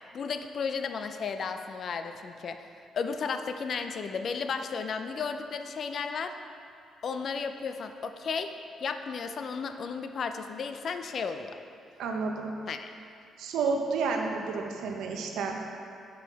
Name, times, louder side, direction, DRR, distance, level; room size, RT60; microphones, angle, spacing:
voice 1, 0.1-2.7 2.9-6.3 7.0-8.5 8.8-11.6 12.7-12.9, left 5 dB, 55° left, 8 dB, 0.4 m, -34 dB
voice 2, 12.0-12.5 13.4-15.6, right 4 dB, 85° right, 2 dB, 0.7 m, -30 dB
5.6 x 5.3 x 4.1 m, 2.5 s
cardioid pair, 90°, 0 cm